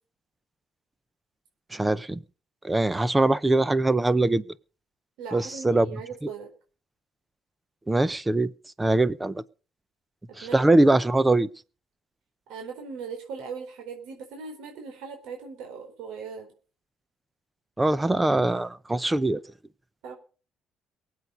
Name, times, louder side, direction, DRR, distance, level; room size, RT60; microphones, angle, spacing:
voice 1, 1.7-2.2 2.6-4.4 5.3-5.9 6.2-6.3 7.9-8.5 8.8-9.4 10.4-11.5 17.8-19.4, right 2 dB, 10° right, 0.7 m, -22 dB
voice 2, 5.2-6.5 10.3-10.7 12.5-16.5 20.0-20.2, right 5 dB, 85° right, 4.3 m, -39 dB
23.0 x 8.3 x 5.3 m
cardioid pair, 140°, 0 cm